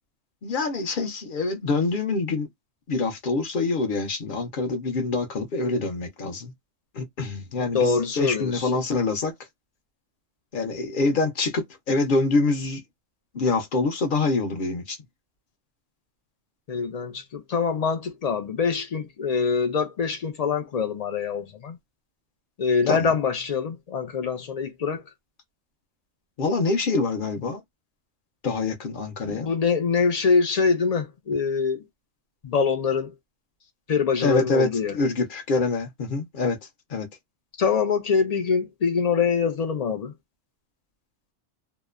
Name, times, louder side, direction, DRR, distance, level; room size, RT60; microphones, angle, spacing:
voice 1, 0.4-2.5 2.9-6.5 6.9-9.3 10.5-12.8 13.3-15.0 22.9-23.1 26.4-27.6 28.4-29.5 34.2-36.6 36.9-37.1, left 3 dB, 50° left, 0.7 m, -25 dB
voice 2, 7.7-8.7 16.7-21.8 22.6-25.0 29.3-31.8 32.4-33.1 33.9-35.0 37.6-40.1, left 5 dB, 90° left, 0.3 m, -24 dB
2.8 x 2.1 x 2.2 m
omnidirectional pair, 1.3 m